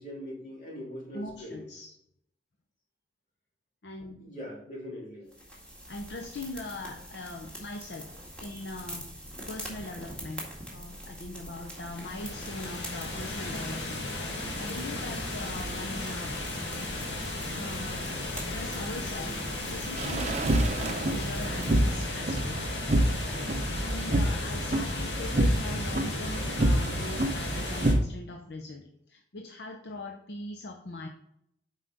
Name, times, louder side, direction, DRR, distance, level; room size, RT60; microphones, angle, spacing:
voice 1, 0.0-1.7 4.1-5.3, equal, 50° left, -4 dB, 3.1 m, -41 dB
voice 2, 1.1-1.9 3.8-4.2 5.9-9.2 9.5-10.5 10.7-16.4 17.5-19.4 19.7-22.6 23.2-31.1, left 2 dB, 70° left, 3 dB, 0.7 m, -41 dB
sound 1, 5.3-22.1, equal, 5° left, 2.0 m, -44 dB
sound 2, 11.7-27.9, left 2 dB, 85° left, 1.9 m, -35 dB
sound 3, 20.0-28.0, right 1 dB, 40° right, 0.6 m, -28 dB
7.8 x 5.0 x 3.9 m, 0.76 s
head